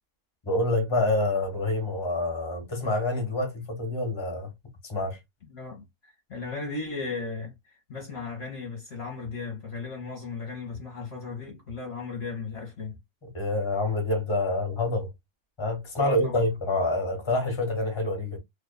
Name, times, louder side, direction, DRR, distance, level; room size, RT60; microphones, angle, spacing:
voice 1, 0.4-4.5 4.8-5.2 13.2-15.1 15.6-18.4, left 2 dB, 25° left, 1.0 m, -27 dB
voice 2, 5.5-13.0 16.0-16.5, left 4 dB, 50° left, 1.0 m, -36 dB
2.7 x 2.4 x 2.2 m
omnidirectional pair, 1.5 m